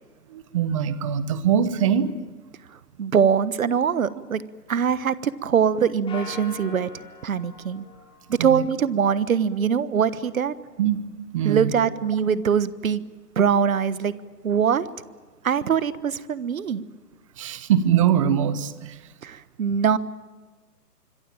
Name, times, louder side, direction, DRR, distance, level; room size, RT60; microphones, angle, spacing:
voice 1, 0.3-2.1 8.4-8.6 10.8-11.0 11.3-11.7 17.4-19.0, right 9 dB, 20° right, 14 dB, 1.0 m, -22 dB
voice 2, 3.0-4.4 4.7-6.9 7.2-7.8 8.3-10.6 11.4-13.0 13.4-14.1 14.4-14.9 15.4-16.8 19.2-20.0, right 7 dB, 60° right, 16 dB, 1.3 m, -22 dB
sound 1, 6.1-8.8, left 4 dB, 10° left, 6.9 m, -42 dB
25.5 x 23.0 x 8.9 m, 1.3 s
hypercardioid pair, 145°, 48 cm